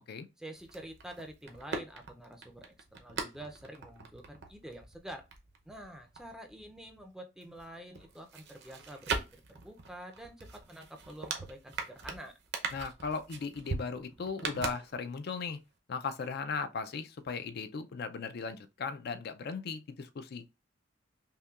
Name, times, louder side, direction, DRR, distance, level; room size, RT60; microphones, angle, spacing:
voice 1, 0.4-5.3 5.7-12.4, right 1 dB, 5° right, 0.5 m, -48 dB
sound 1, 0.6-7.1 7.4-15.4 15.7-15.8, right 4 dB, 60° right, 0.7 m, -41 dB
voice 2, 12.7-15.6 15.9-20.4, left 5 dB, 55° left, 0.4 m, -37 dB
5.5 x 2.2 x 2.4 m
head